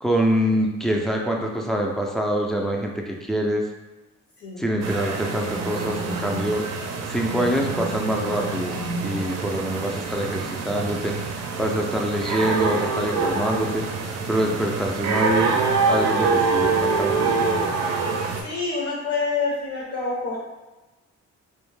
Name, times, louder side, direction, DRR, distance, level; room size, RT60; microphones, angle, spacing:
voice 1, 0.0-3.6 4.6-6.6 7.1-8.7 9.0-13.8 14.3-17.5, right 1 dB, ahead, 0 dB, 0.4 m, -25 dB
sound 1, 4.8-18.4, right 4 dB, 60° right, 0.5 m, -25 dB
voice 2, 18.4-20.4, left 4 dB, 60° left, -4 dB, 0.7 m, -27 dB
2.4 x 2.2 x 3.2 m, 1.1 s
cardioid pair, 90°, 30 cm